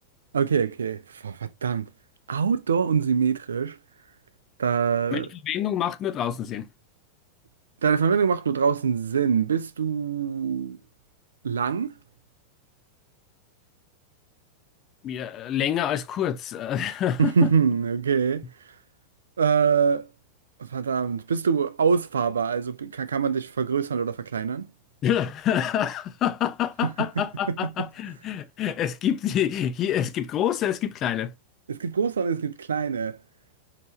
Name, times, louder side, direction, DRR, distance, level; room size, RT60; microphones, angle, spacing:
voice 1, 0.3-1.9 2.3-3.8 4.6-5.3 7.8-10.8 11.4-11.9 17.2-18.4 19.4-20.1 20.6-24.7 26.8-26.9 27.5-27.6 31.7-33.2, right 6 dB, 70° right, 0.4 m, -24 dB
voice 2, 5.1-6.7 15.0-17.5 25.0-31.3, left 10 dB, 30° left, 0.5 m, -27 dB
5.3 x 2.9 x 2.9 m
figure-of-eight pair, 90°, 0 cm